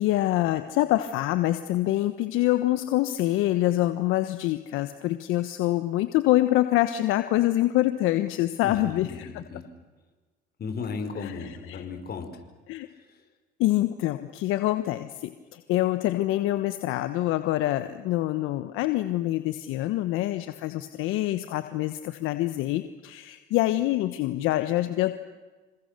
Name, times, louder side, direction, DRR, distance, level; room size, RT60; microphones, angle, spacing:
voice 1, 0.0-9.1 12.7-12.9 13.6-25.1, left 15 dB, 75° left, 10 dB, 1.3 m, -25 dB
voice 2, 8.6-9.7 10.6-12.5 12.8-13.3, left 5 dB, 50° left, 7 dB, 5.2 m, -36 dB
28.5 x 26.0 x 6.9 m, 1.3 s
supercardioid pair, 75°, 21 cm